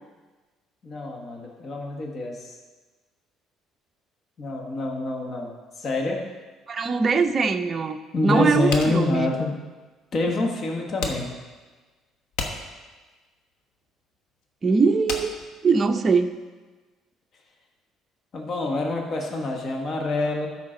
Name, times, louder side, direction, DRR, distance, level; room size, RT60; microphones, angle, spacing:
voice 1, 0.8-2.6 4.4-5.5 5.8-6.2 8.1-9.5 10.1-11.3 18.3-20.5, left 2 dB, 40° left, 1 dB, 1.4 m, -26 dB
voice 2, 6.7-9.3 14.6-16.4, right 4 dB, 30° right, 6 dB, 0.7 m, -22 dB
sound 1, 8.7-16.3, left 4 dB, 85° left, 1.1 m, -35 dB
13.5 x 5.8 x 3.8 m, 1.3 s
cardioid pair, 115°, 0 cm